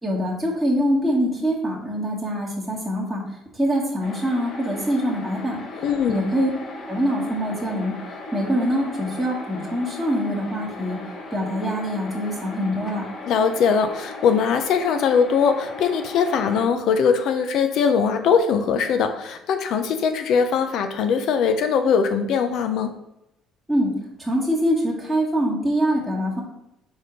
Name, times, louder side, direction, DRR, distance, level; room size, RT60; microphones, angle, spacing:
voice 1, 0.0-5.6 6.1-6.5 6.9-8.0 8.3-11.0 11.3-13.1 23.7-23.9 24.2-26.4, equal, 5° right, -6 dB, 2.0 m, -24 dB
sound 1, 4.0-16.7, left 2 dB, 50° left, 1.3 m, -37 dB
voice 2, 5.8-6.2 13.3-23.0, left 6 dB, 65° left, 8 dB, 0.7 m, -21 dB
4.9 x 4.3 x 5.2 m, 0.85 s
cardioid pair, 115°, 0 cm